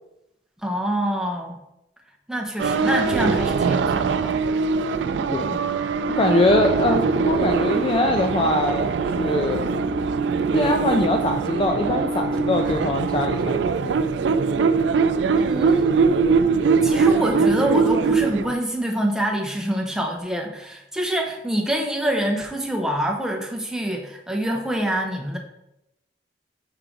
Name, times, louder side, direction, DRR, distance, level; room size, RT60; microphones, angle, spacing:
voice 1, 0.6-1.6 2.3-4.3 15.3-16.1 16.8-25.4, right 1 dB, 5° right, 0 dB, 0.8 m, -26 dB
sound 1, 2.6-18.5, right 5 dB, 80° right, 0.4 m, -22 dB
voice 2, 6.2-9.7 10.5-14.0, left 2 dB, 30° left, 4 dB, 0.4 m, -22 dB
5.6 x 4.7 x 3.8 m, 0.86 s
head